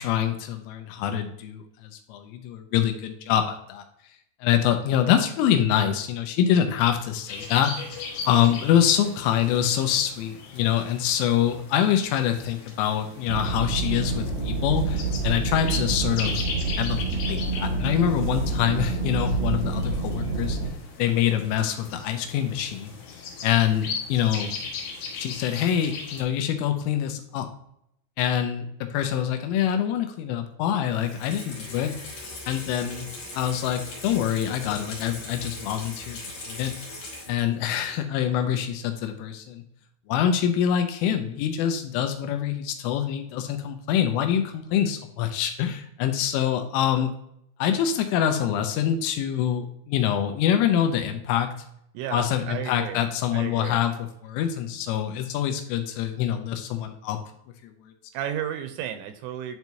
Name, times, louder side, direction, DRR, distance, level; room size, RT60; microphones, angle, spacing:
voice 1, 0.0-3.8 4.4-7.7 8.3-16.5 16.8-20.6 21.0-22.9 23.4-24.5 25.2-27.5 28.2-31.9 32.5-33.1 33.3-36.2 36.5-36.7 37.3-39.6 40.1-47.1 47.6-51.5 52.1-57.2 57.6-57.9, left 10 dB, 85° left, 7 dB, 3.2 m, -25 dB
sound 1, 7.3-26.2, left 5 dB, 65° left, 3.2 m, -38 dB
sound 2, 13.3-20.7, right 4 dB, 60° right, 1.2 m, -27 dB
Water tap faucet / Sink (filling or washing), 30.9-37.6 38.0-38.1, left 2 dB, 50° left, 3.4 m, -40 dB
voice 2, 51.9-53.0 53.3-53.8 58.1-59.6, right 10 dB, 85° right, 9 dB, 3.0 m, -33 dB
10.5 x 4.5 x 2.7 m, 0.75 s
omnidirectional pair, 5.7 m